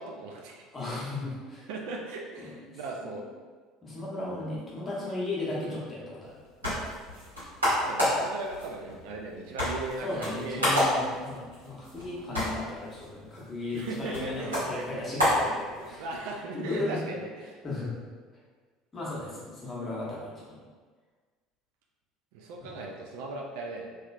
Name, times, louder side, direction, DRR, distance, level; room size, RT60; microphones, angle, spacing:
voice 1, 0.0-0.7 1.7-3.2 5.0-5.2 5.6-5.8 7.8-10.9 13.7-14.8 15.8-17.6 22.3-23.9, right 3 dB, 60° right, 0 dB, 0.4 m, -38 dB
voice 2, 0.7-1.7 2.4-2.5 3.0-3.1 3.8-7.0 10.0-16.0 16.5-17.1 17.6-17.9 18.9-20.6 22.6-22.7, left 2 dB, 30° left, -6 dB, 1.1 m, -36 dB
sound 1, 6.2-16.2, equal, 85° right, 1.4 m, -31 dB
3.1 x 3.0 x 2.4 m, 1.5 s
figure-of-eight pair, 65°, 0 cm